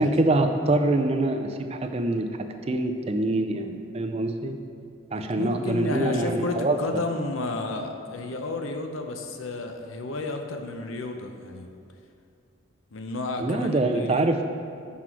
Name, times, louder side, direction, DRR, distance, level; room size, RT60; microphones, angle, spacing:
voice 1, 0.0-2.3 2.7-4.6 5.1-6.8 13.4-14.4, right 2 dB, 30° right, 6 dB, 0.4 m, -24 dB
voice 2, 5.1-11.7 12.9-14.3, left 2 dB, 75° left, 5 dB, 0.7 m, -32 dB
6.0 x 5.9 x 4.6 m, 2.5 s
head